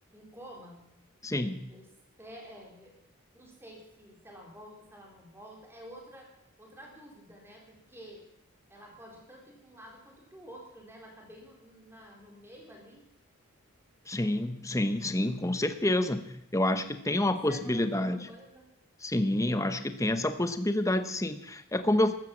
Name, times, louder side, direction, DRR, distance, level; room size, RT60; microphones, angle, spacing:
voice 1, 0.1-0.8 1.7-1.9 2.2-3.0 3.3-6.3 6.6-8.3 8.7-13.0 17.2-18.7, equal, 10° right, -1 dB, 4.2 m, -50 dB
voice 2, 1.2-1.7 14.1-18.2 19.0-22.1, left 1 dB, 15° left, 9 dB, 0.9 m, -28 dB
14.0 x 12.5 x 7.3 m, 0.78 s
head